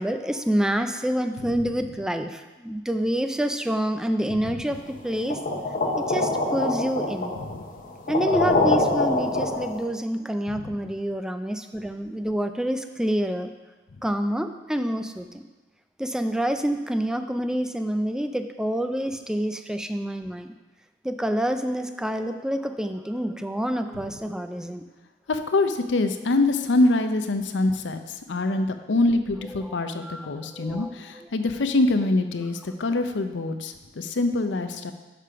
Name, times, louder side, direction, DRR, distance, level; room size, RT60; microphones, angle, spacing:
voice 1, 0.0-5.4 6.1-7.3 8.1-13.5 14.0-15.4 16.0-20.5 21.0-24.8 29.6-31.3, equal, 5° right, 8 dB, 0.3 m, -27 dB
sound 1, 5.3-9.8, left 2 dB, 50° left, 0.8 m, -25 dB
voice 2, 25.3-34.9, left 2 dB, 85° left, 8 dB, 0.6 m, -25 dB
6.7 x 5.0 x 5.6 m, 1.2 s
head